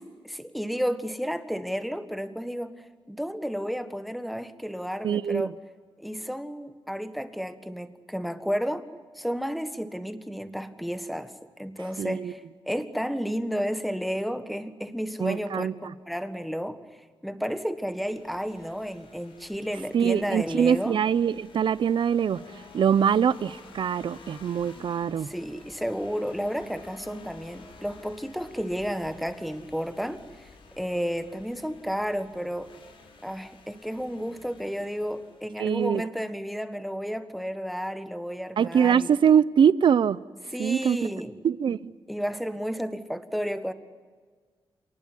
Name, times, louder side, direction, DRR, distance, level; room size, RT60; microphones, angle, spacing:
voice 1, 0.2-5.6 6.0-8.9 9.1-12.4 12.7-15.7 16.1-16.8 17.2-21.0 25.2-30.5 30.8-32.7 33.2-39.2 40.5-41.4 42.1-43.7, equal, ahead, 1.6 m, -32 dB
voice 2, 5.0-5.5 12.0-12.3 15.2-15.7 19.9-22.4 22.7-25.3 35.6-36.0 38.6-40.2 40.6-41.0 41.4-41.9, right 8 dB, 65° right, 0.8 m, -23 dB
sound 1, 17.8-35.7, left 3 dB, 80° left, 5.2 m, -51 dB
27.5 x 19.5 x 10.0 m
wide cardioid pair, 120°, 9 cm